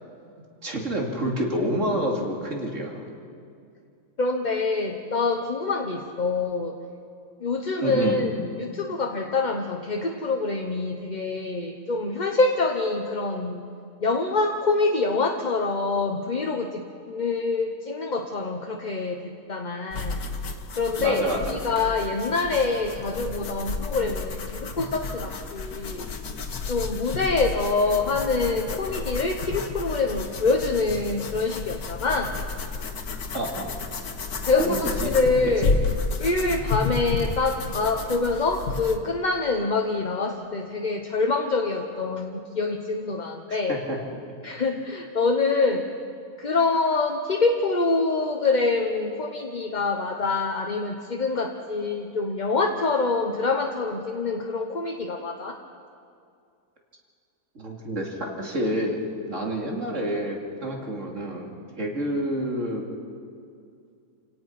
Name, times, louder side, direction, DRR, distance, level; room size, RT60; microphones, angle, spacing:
voice 1, 0.6-3.0 7.8-8.2 21.0-21.5 33.3-33.7 34.6-35.1 35.6-35.7 43.7-44.0 57.5-59.0 59.2-61.5 61.8-62.9, right 1 dB, 50° right, 0 dB, 3.1 m, -28 dB
voice 2, 4.2-6.8 7.4-13.6 14.0-20.2 20.8-26.0 26.7-32.3 34.4-35.7 36.2-43.8 44.4-45.8 46.4-55.6, left 3 dB, 35° left, 3 dB, 1.0 m, -25 dB
sound 1, 19.9-39.0, left 4 dB, 70° left, 1.8 m, -31 dB
28.0 x 17.5 x 5.9 m, 2.4 s
omnidirectional pair, 1.6 m